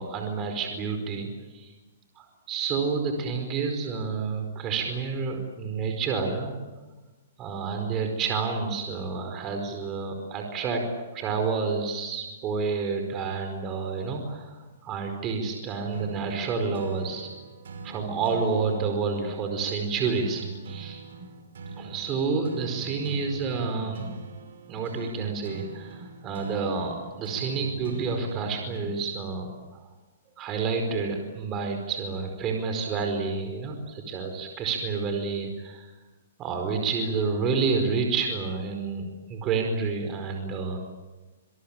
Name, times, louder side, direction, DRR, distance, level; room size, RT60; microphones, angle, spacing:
voice 1, 0.0-1.7 2.2-6.5 7.4-10.9 11.1-17.3 17.8-21.0 21.8-24.1 24.7-29.5 30.4-35.9 36.4-40.8, right 4 dB, 25° right, 4 dB, 4.9 m, -29 dB
sound 1, 15.9-29.4, right 5 dB, 75° right, 5.3 m, -42 dB
26.0 x 22.5 x 9.0 m, 1.2 s
hypercardioid pair, 140°, 0 cm